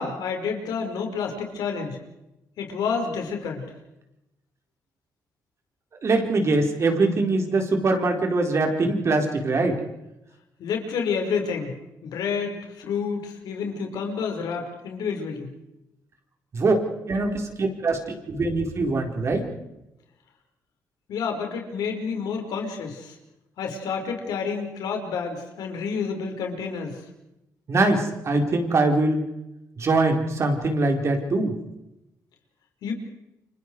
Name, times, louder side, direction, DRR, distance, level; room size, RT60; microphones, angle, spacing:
voice 1, 0.0-2.0 2.6-3.7 10.6-15.5 21.1-23.2 23.6-27.1 32.8-32.9, left 5 dB, 85° left, 3 dB, 5.2 m, -29 dB
voice 2, 6.0-9.8 16.5-16.8 17.1-19.5 27.7-29.2 29.8-31.5, right 2 dB, 45° right, 3 dB, 4.6 m, -23 dB
29.5 x 25.5 x 4.8 m, 0.89 s
cardioid pair, 100°, 7 cm